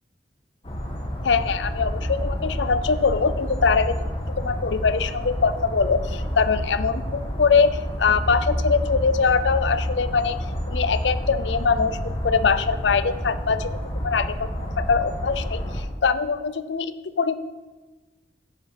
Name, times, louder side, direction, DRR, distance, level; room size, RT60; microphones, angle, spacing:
sound 1, 0.6-15.8, equal, 30° left, 1.4 m, -29 dB
voice 1, 1.2-4.1 4.4-7.7 8.0-10.4 10.7-12.0 12.2-13.7 14.0-17.3, left 5 dB, 90° left, 13 dB, 0.6 m, -22 dB
10.0 x 5.7 x 5.7 m, 1.2 s
head